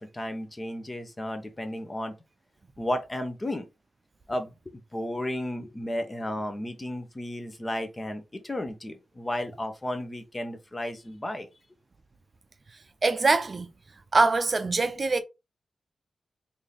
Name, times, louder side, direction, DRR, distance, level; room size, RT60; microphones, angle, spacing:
voice 1, 0.0-2.2 2.8-3.7 4.3-11.5, left 1 dB, 25° left, 0.8 m, -33 dB
voice 2, 13.0-13.7 14.1-15.2, right 3 dB, 45° right, 0.5 m, -23 dB
3.6 x 2.7 x 3.2 m
cardioid pair, 65°, 0 cm